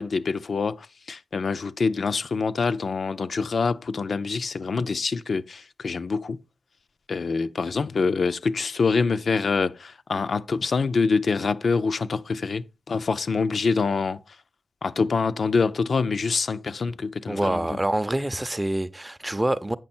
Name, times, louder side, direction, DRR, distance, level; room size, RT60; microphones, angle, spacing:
voice 1, 0.0-6.4 7.1-14.2 14.8-17.8, left 4 dB, 75° left, 0.5 m, -25 dB
voice 2, 17.3-19.8, right 1 dB, 15° right, 0.6 m, -26 dB
8.8 x 6.1 x 4.3 m
wide cardioid pair, 125°, 0 cm